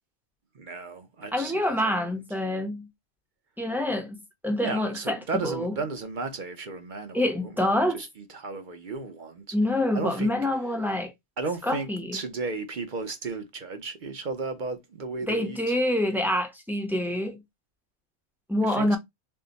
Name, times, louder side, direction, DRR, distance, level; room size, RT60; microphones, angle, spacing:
voice 1, 0.5-2.1 4.6-9.6 9.9-10.3 11.4-15.8 18.6-19.0, right 3 dB, 45° right, 0.7 m, -35 dB
voice 2, 1.3-2.9 3.6-5.2 5.4-5.7 7.1-8.0 9.5-11.1 11.6-12.2 15.3-17.4 18.5-19.0, left 1 dB, ahead, 0.6 m, -26 dB
5.6 x 2.1 x 3.9 m
omnidirectional pair, 1.4 m